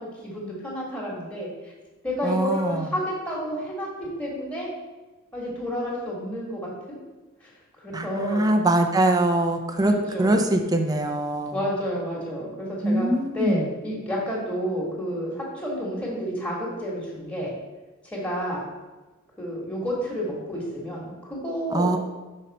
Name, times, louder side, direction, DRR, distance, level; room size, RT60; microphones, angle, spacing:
voice 1, 0.0-1.7 2.0-4.7 5.3-7.0 7.4-7.5 8.0-8.5 9.8-10.5 11.5-13.1 13.3-17.5 18.0-18.6 19.4-21.9, equal, 5° left, -5 dB, 1.7 m, -30 dB
voice 2, 2.2-2.9 7.9-9.9 10.2-11.6 12.8-13.7 21.7-22.0, right 1 dB, 15° right, 5 dB, 0.4 m, -23 dB
5.9 x 5.2 x 4.1 m, 1.2 s
head